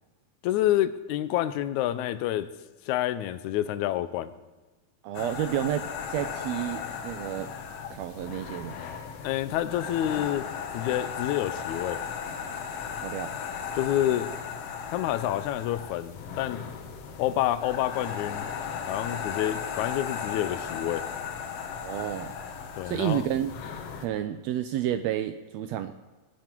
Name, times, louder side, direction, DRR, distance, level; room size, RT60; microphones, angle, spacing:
voice 1, 0.4-2.5 2.9-4.3 9.2-10.5 10.7-12.0 13.8-14.3 14.9-16.6 17.2-18.5 18.8-21.1 22.8-23.2, left 13 dB, 80° left, 13 dB, 1.9 m, -28 dB
voice 2, 5.0-7.5 7.9-8.7 13.0-13.4 21.7-22.3 22.8-23.5 24.0-26.1, right 11 dB, 80° right, 9 dB, 1.6 m, -30 dB
sound 1, 5.1-24.1, left 6 dB, 65° left, 1.8 m, -36 dB
19.5 x 7.4 x 4.5 m, 1.2 s
omnidirectional pair, 3.4 m